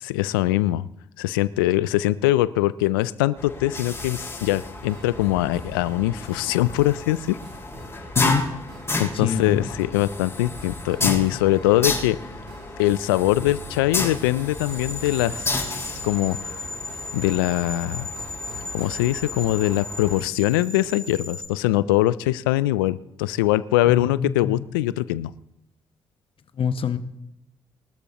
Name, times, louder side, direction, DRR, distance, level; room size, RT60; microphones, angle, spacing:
voice 1, 0.0-0.9 1.2-7.4 9.0-12.2 12.8-15.7 16.0-16.6 17.1-18.1 18.7-25.3, left 16 dB, 90° left, 18 dB, 0.4 m, -22 dB
sound 1, 3.4-20.2, left 2 dB, 25° left, 6.1 m, -32 dB
sound 2, 3.9-19.1, right 2 dB, 80° right, 4.9 m, -46 dB
voice 2, 8.2-8.6 9.1-9.7 23.8-24.5 26.6-27.0, left 6 dB, 55° left, 10 dB, 1.0 m, -25 dB
sound 3, 14.5-21.5, left 3 dB, 5° left, 4.4 m, -36 dB
23.5 x 13.0 x 3.0 m, 0.82 s
hypercardioid pair, 45°, 11 cm